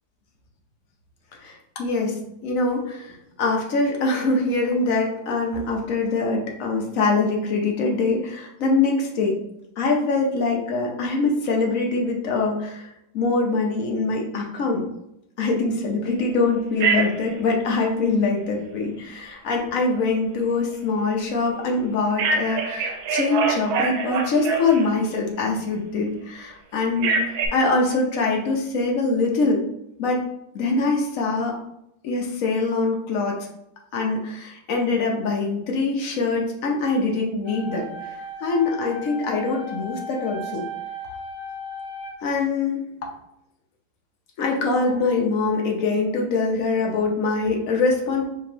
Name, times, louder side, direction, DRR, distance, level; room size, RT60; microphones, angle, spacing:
voice 1, 1.4-9.4 9.8-14.9 15.4-27.2 27.5-29.6 30.0-30.2 30.5-31.6 32.0-33.4 33.9-38.1 38.4-40.7 42.2-42.9 44.4-48.2, left 3 dB, 55° left, 0 dB, 1.0 m, -23 dB
Telephone, 16.8-17.3 22.2-25.1 27.0-27.5, right 4 dB, 85° right, 1.5 m, -24 dB
sound 1, 37.4-42.4, equal, 55° right, 2.1 m, -35 dB
5.0 x 3.6 x 2.9 m, 0.80 s
omnidirectional pair, 2.1 m